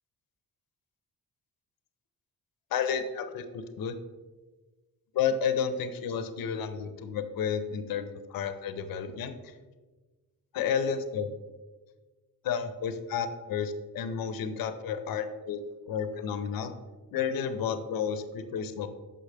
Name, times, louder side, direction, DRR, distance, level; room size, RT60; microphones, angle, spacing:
voice 1, 2.7-4.0 5.1-9.5 10.5-11.3 12.4-15.6 15.9-16.7 17.1-18.9, left 7 dB, 65° left, 10 dB, 0.6 m, -31 dB
6.5 x 5.5 x 3.3 m, 1.3 s
wide cardioid pair, 175°, 37 cm